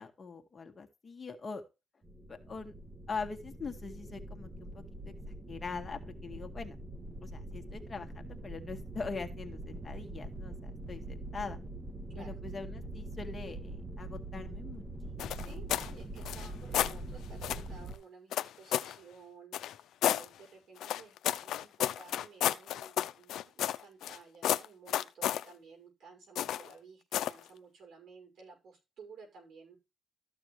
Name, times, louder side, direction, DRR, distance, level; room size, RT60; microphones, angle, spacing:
voice 1, 0.0-1.6 2.3-2.7 3.1-5.1 5.5-6.8 7.2-11.6 12.2-15.6, left 4 dB, 30° left, 4 dB, 1.9 m, -42 dB
sound 1, 2.0-18.0, right 2 dB, 30° right, 2.2 m, -43 dB
sound 2, 15.2-15.9 16.2-17.0 17.4-17.7 18.3-19.0 19.5-20.3 20.8-24.2 24.4-25.4 26.4-26.7 27.1-27.4, left 11 dB, 80° left, 0.6 m, -32 dB
voice 2, 15.3-29.8, right 5 dB, 70° right, 3 dB, 6.3 m, -54 dB
13.5 x 6.8 x 3.3 m, 0.27 s
cardioid pair, 90°, 0 cm